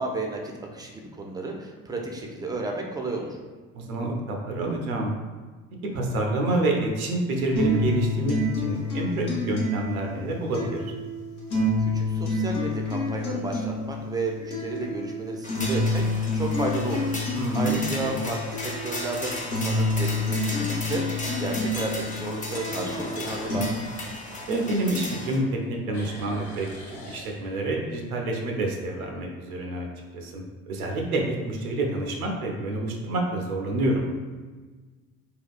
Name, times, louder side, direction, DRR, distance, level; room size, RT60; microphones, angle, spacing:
voice 1, 0.0-3.3 11.8-23.7, right 2 dB, 10° right, 1 dB, 0.4 m, -33 dB
voice 2, 3.7-5.1 5.9-10.9 17.3-18.2 24.5-29.9 30.1-34.0, right 2 dB, 85° right, 1 dB, 0.6 m, -28 dB
sound 1, 7.6-23.6, left 1 dB, 90° left, 0.8 m, -28 dB
sound 2, 9.4-9.7 10.3-10.4 15.7-16.1 16.6-16.7 17.3-17.4 17.6-17.7 19.2-19.3 22.6-25.2 25.5-27.9, left 1 dB, 65° left, 0.9 m, -43 dB
sound 3, 15.4-25.4, left 2 dB, 20° left, 0.7 m, -36 dB
3.6 x 2.3 x 2.4 m, 1.3 s
hypercardioid pair, 60°, 42 cm